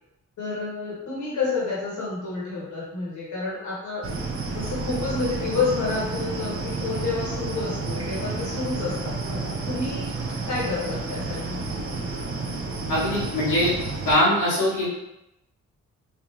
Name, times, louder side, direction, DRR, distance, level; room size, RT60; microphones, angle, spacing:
voice 1, 0.4-4.0 4.5-10.1 10.4-11.6, left 4 dB, 70° left, -7 dB, 1.4 m, -29 dB
sound 1, 4.0-14.2, right 3 dB, 45° right, 0.7 m, -30 dB
voice 2, 12.9-13.7 14.0-14.9, left 1 dB, 90° left, -10 dB, 1.4 m, -21 dB
3.4 x 2.4 x 2.9 m, 0.86 s
supercardioid pair, 50°, 31 cm